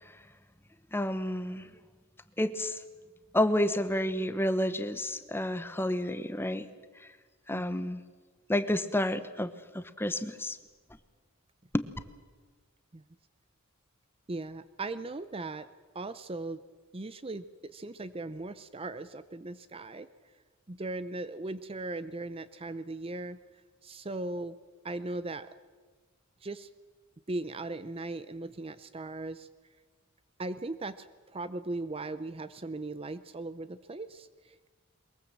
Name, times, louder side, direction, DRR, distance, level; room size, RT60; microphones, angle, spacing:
voice 1, 0.9-1.7 2.4-2.8 3.3-6.7 7.5-8.0 8.5-10.6 11.7-11.9, left 1 dB, 10° left, 12 dB, 1.0 m, -30 dB
voice 2, 14.3-15.7 15.9-16.6 16.9-20.1 20.7-23.4 23.8-24.6 24.8-25.5 26.4-26.7 27.3-29.5 30.4-31.1 31.3-34.7, right 2 dB, 25° right, 13 dB, 0.6 m, -38 dB
22.5 x 21.5 x 7.5 m, 1.4 s
head